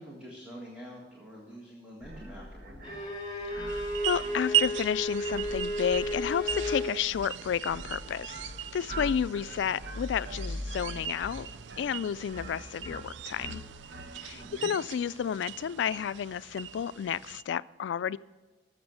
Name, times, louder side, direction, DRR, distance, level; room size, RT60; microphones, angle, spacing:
voice 1, 0.0-2.8 14.3-14.7, equal, 5° right, -4 dB, 1.7 m, -46 dB
sound 1, 2.0-14.5, equal, 60° right, 1.2 m, -43 dB
Bowed string instrument, 2.8-6.9, left 1 dB, 25° left, 2.5 m, -33 dB
voice 2, 3.5-11.5 11.8-13.6 14.2-18.2, left 8 dB, 80° left, 18 dB, 0.3 m, -31 dB
sound 2, 3.7-17.4, right 11 dB, 80° right, 0.4 m, -38 dB
13.5 x 6.7 x 6.2 m, 1.2 s
head